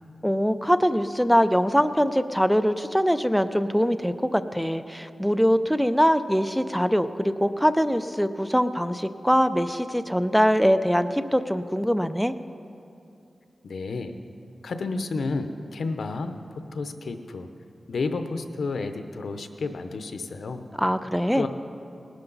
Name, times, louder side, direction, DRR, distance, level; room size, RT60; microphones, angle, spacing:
voice 1, 0.2-12.3 20.8-21.5, equal, ahead, 10 dB, 0.5 m, -23 dB
voice 2, 13.6-14.1 14.6-17.5 17.9-20.6 21.3-21.5, left 3 dB, 90° left, 8 dB, 0.7 m, -31 dB
19.0 x 11.5 x 4.0 m, 2.6 s
wide cardioid pair, 80°, 0 cm